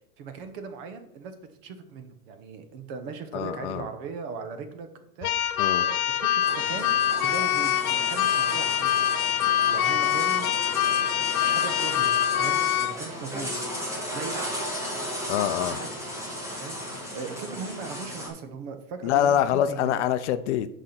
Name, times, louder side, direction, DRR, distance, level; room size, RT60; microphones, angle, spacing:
voice 1, 0.2-1.3 1.6-4.9 5.2-5.4 5.8-7.0 7.2-9.1 9.7-10.5 11.4-12.1 12.4-13.5 14.1-14.6 15.7-15.9 16.6-20.0, right 5 dB, 40° right, 9 dB, 1.0 m, -38 dB
voice 2, 3.3-3.9 5.6-5.8 15.3-15.8 19.0-20.7, left 10 dB, 55° left, 12 dB, 0.6 m, -25 dB
Keyboard (musical), 5.2-13.0, left 11 dB, 85° left, 1.1 m, -24 dB
sound 1, 6.4-18.3, equal, 5° right, 1.4 m, -35 dB
6.5 x 5.1 x 5.7 m, 0.79 s
supercardioid pair, 160°, 42 cm